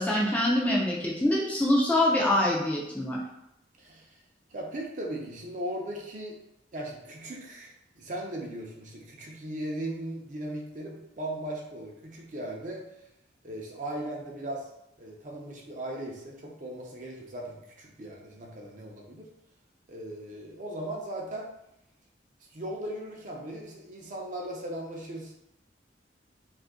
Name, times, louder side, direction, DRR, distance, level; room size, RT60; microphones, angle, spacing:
voice 1, 0.0-3.2, left 1 dB, 10° left, -4 dB, 0.4 m, -25 dB
voice 2, 3.8-4.2 4.5-6.3 6.7-12.8 13.4-14.7 15.0-19.3 19.9-21.5 22.5-25.3, right 1 dB, 40° right, -1 dB, 0.5 m, -38 dB
2.6 x 2.5 x 3.6 m, 0.86 s
head